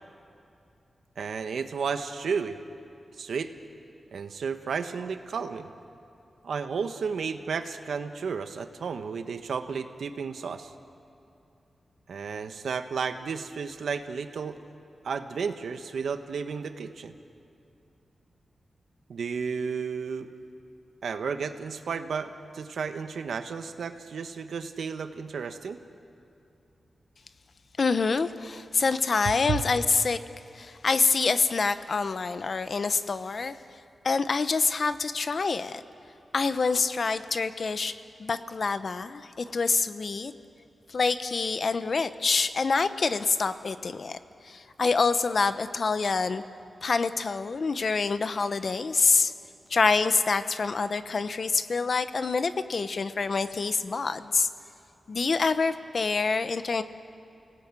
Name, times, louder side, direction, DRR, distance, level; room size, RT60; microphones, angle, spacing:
voice 1, 1.2-2.6 3.2-3.5 4.1-5.7 6.4-10.7 12.1-14.6 15.0-17.1 19.1-20.3 21.0-25.8 29.5-29.6, right 5 dB, 90° right, 8 dB, 1.3 m, -32 dB
voice 2, 27.8-30.2 30.5-33.6 34.0-35.8 36.3-37.9 38.2-40.3 40.9-44.2 44.4-46.4 46.8-49.3 49.7-54.5 55.1-56.8, left 4 dB, 50° left, 11 dB, 0.9 m, -26 dB
29.5 x 18.0 x 9.0 m, 2.7 s
wide cardioid pair, 115°, 0 cm